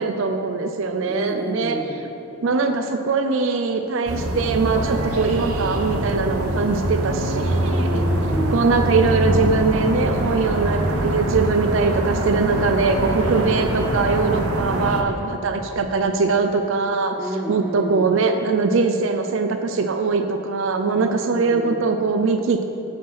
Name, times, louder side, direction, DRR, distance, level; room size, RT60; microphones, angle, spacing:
voice 1, 0.0-1.8 2.4-8.0 8.5-17.2 17.5-22.6, right 4 dB, 60° right, 6 dB, 0.4 m, -22 dB
voice 2, 1.1-2.1 7.6-9.0 12.4-13.8 17.2-18.2 20.9-21.8, equal, 10° right, 1 dB, 0.6 m, -31 dB
sound 1, 4.1-15.0, right 1 dB, 80° right, 0.8 m, -24 dB
9.4 x 5.0 x 5.9 m, 2.8 s
head